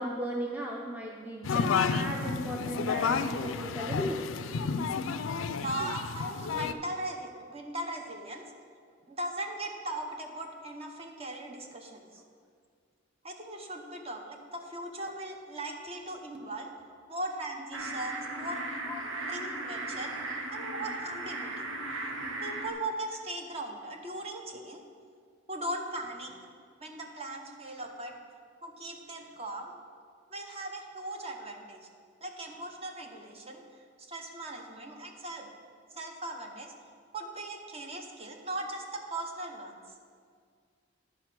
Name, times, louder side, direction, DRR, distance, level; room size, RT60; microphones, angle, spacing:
voice 1, 0.0-4.3 18.8-19.0 24.5-24.7, equal, 10° right, -2 dB, 0.6 m, -36 dB
sound 1, 1.4-6.7, left 5 dB, 90° left, 0.4 m, -31 dB
voice 2, 5.6-8.4 9.1-12.2 13.2-16.7 17.1-18.6 19.2-20.1 20.5-21.7 22.4-24.8 25.5-26.3 26.8-28.2 28.6-29.7 30.3-31.9 32.2-35.5 35.9-36.7 37.1-39.8, right 1 dB, 30° right, 3 dB, 0.9 m, -39 dB
sound 2, 17.7-22.7, right 2 dB, 85° right, 1.0 m, -37 dB
11.0 x 5.0 x 5.9 m, 2.1 s
head